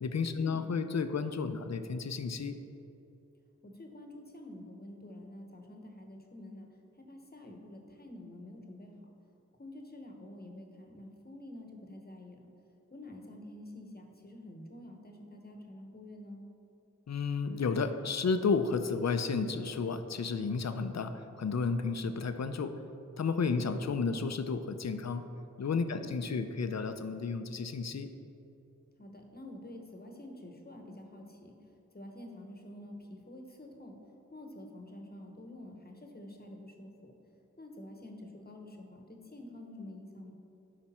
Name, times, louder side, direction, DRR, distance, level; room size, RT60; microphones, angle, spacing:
voice 1, 0.0-2.6 17.1-21.1 21.4-22.7 23.2-25.2 25.6-28.1, left 5 dB, 60° left, 9 dB, 0.6 m, -32 dB
voice 2, 3.6-6.7 7.1-8.9 9.6-12.5 12.9-16.4 23.6-23.8 25.9-26.1 29.0-31.5 31.9-34.0 34.3-37.1 37.6-40.3, left 1 dB, 30° left, 2 dB, 1.1 m, -48 dB
11.5 x 5.0 x 4.3 m, 2.8 s
wide cardioid pair, 70°, 30 cm